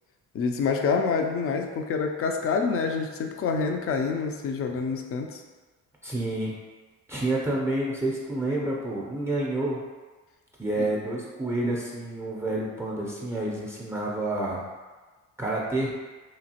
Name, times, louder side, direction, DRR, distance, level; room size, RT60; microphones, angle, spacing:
voice 1, 0.3-5.4 10.7-10.9, left 5 dB, 50° left, 3 dB, 0.4 m, -27 dB
voice 2, 6.0-6.6 7.1-9.8 10.6-14.6 15.4-15.9, right 2 dB, 10° right, -4 dB, 0.5 m, -29 dB
3.0 x 2.4 x 2.8 m, 1.3 s
cardioid pair, 90°, 30 cm